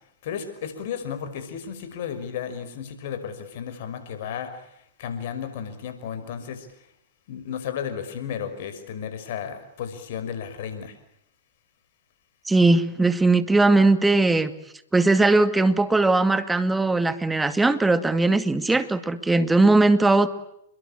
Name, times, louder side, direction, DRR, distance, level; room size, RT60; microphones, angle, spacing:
voice 1, 0.2-4.7 5.0-6.7 7.3-11.0, left 8 dB, 60° left, 10 dB, 5.8 m, -33 dB
voice 2, 12.5-14.5 14.9-20.3, right 2 dB, 10° right, 11 dB, 2.2 m, -19 dB
29.0 x 22.5 x 9.0 m, 0.76 s
figure-of-eight pair, 100°, 0 cm